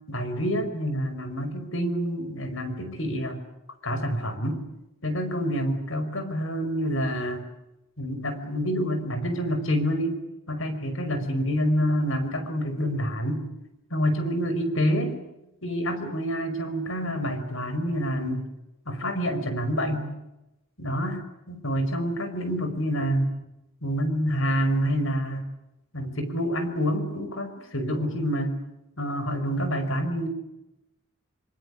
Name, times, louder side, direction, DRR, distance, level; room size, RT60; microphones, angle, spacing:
voice 1, 0.1-3.4 3.8-4.6 5.0-7.4 8.0-10.2 10.5-13.4 13.9-15.2 15.6-18.5 18.9-20.1 20.8-23.3 23.8-25.5 25.9-28.6 29.0-30.3, equal, 70° left, 9 dB, 5.4 m, -27 dB
26.0 x 24.5 x 8.5 m, 0.92 s
head